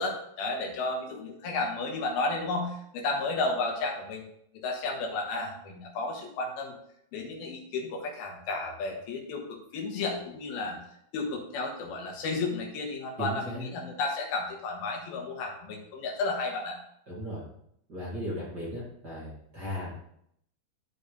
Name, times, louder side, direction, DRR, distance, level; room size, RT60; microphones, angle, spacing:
voice 1, 0.0-4.2 4.6-6.7 7.1-10.8 11.1-16.8, left 3 dB, 85° left, 1 dB, 3.2 m, -32 dB
voice 2, 13.2-13.7 17.1-17.4 17.9-19.9, equal, 35° right, -7 dB, 2.0 m, -36 dB
12.5 x 4.4 x 3.3 m, 0.71 s
omnidirectional pair, 4.3 m